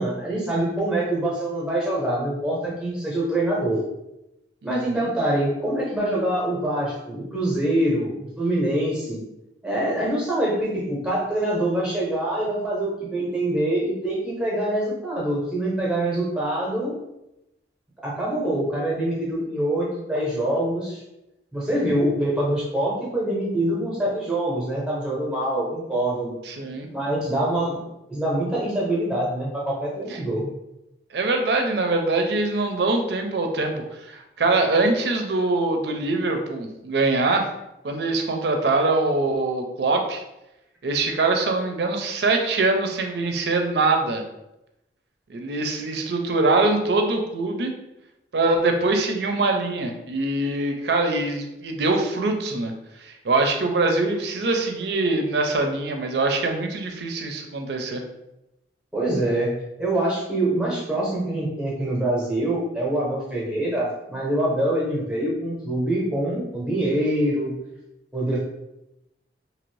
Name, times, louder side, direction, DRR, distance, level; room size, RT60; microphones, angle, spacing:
voice 1, 0.0-3.8 4.6-9.2 9.6-17.0 18.0-21.0 21.5-26.3 26.9-27.8 28.1-30.5 58.9-67.5 68.1-68.4, right 1 dB, 5° right, -6 dB, 0.7 m, -25 dB
voice 2, 4.6-5.1 26.4-26.9 30.1-30.2 31.1-37.5 37.8-40.2 40.8-44.2 45.3-47.7 48.3-52.7 53.0-58.0, right 2 dB, 65° right, 4 dB, 0.4 m, -23 dB
2.8 x 2.6 x 3.1 m, 0.90 s
head